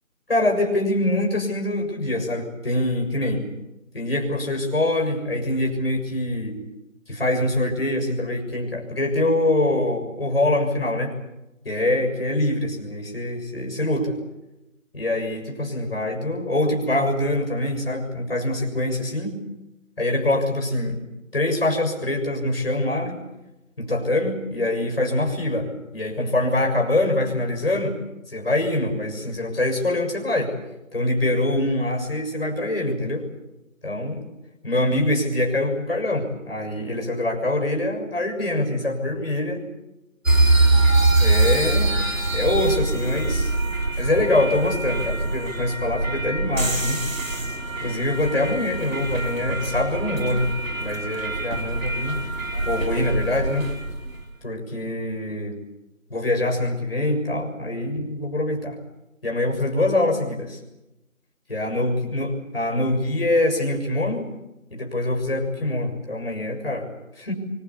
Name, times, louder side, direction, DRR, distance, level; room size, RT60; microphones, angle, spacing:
voice 1, 0.3-3.5 3.9-6.6 7.1-11.1 11.7-14.2 14.9-19.3 20.0-21.0 21.3-23.2 23.8-28.0 28.3-30.5 30.9-33.3 33.8-34.2 34.6-39.6 41.2-41.9 42.3-43.5 44.0-47.0 47.8-50.5 50.8-52.2 52.7-53.7 54.4-55.6 56.1-58.8 59.2-60.6 61.5-64.3 64.7-66.9 67.2-67.3, left 1 dB, 45° left, 2 dB, 7.0 m, -24 dB
sound 1, 40.3-54.2, right 2 dB, 70° right, 3.8 m, -23 dB
25.0 x 22.5 x 8.6 m, 0.96 s
figure-of-eight pair, 175°, 41 cm